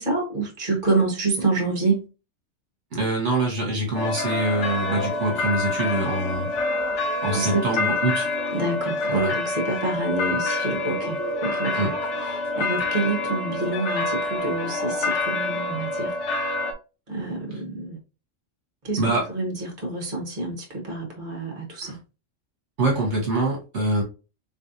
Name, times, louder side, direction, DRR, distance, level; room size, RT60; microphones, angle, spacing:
voice 1, 0.0-2.0 7.3-7.9 8.5-11.2 11.4-11.9 12.2-16.2 17.1-18.0 18.8-19.0 19.3-22.0, right 3 dB, 40° right, 1.5 m, -27 dB
voice 2, 2.9-6.5 7.2-8.3 9.1-9.3 11.7-12.0 17.5-17.6 19.0-19.3 21.8-21.9 22.8-24.0, right 2 dB, 65° right, 1.6 m, -25 dB
sound 1, 3.9-16.7, left 2 dB, 70° left, 1.1 m, -27 dB
3.8 x 3.4 x 2.7 m
omnidirectional pair, 1.3 m